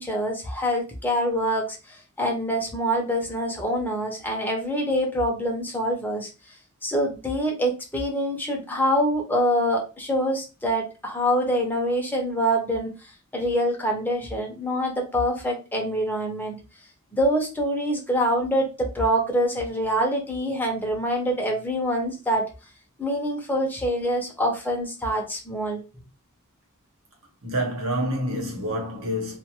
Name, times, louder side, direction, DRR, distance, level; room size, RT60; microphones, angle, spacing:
voice 1, 0.0-6.3 6.8-12.9 13.3-16.6 17.1-22.5 23.0-25.8, equal, 10° left, 0.7 m, -25 dB
voice 2, 27.4-29.4, equal, 65° right, 1.0 m, -27 dB
2.4 x 2.3 x 2.9 m
head